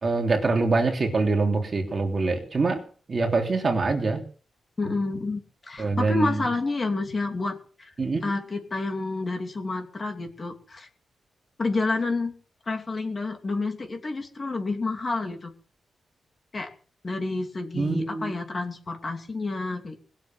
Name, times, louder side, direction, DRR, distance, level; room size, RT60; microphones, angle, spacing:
voice 1, 0.0-2.8 3.1-4.2 5.8-6.4 8.0-8.2 17.7-18.3, right 3 dB, 35° right, 2 dB, 3.2 m, -24 dB
voice 2, 4.8-7.9 8.2-10.9 11.6-12.3 12.7-15.5 16.5-16.7 17.0-20.0, left 3 dB, 30° left, 4 dB, 2.7 m, -29 dB
20.5 x 7.5 x 7.5 m, 0.42 s
wide cardioid pair, 140°, 0 cm